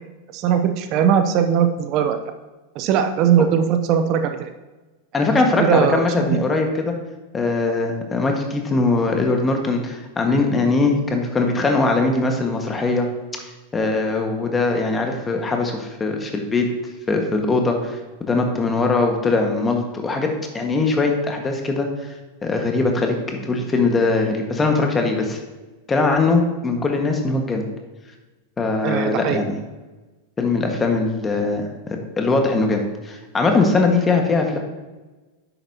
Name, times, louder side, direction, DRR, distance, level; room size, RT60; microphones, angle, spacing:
voice 1, 0.3-2.2 2.8-4.5 5.6-6.0 28.8-29.4, right 8 dB, 45° right, 8 dB, 0.7 m, -19 dB
voice 2, 5.1-6.9 7.3-13.1 13.7-16.7 17.1-21.9 22.4-25.4 25.9-27.6 28.6-29.6 30.4-34.6, left 3 dB, 20° left, 3 dB, 1.6 m, -21 dB
10.0 x 8.0 x 2.9 m, 1.2 s
hypercardioid pair, 95°, 0 cm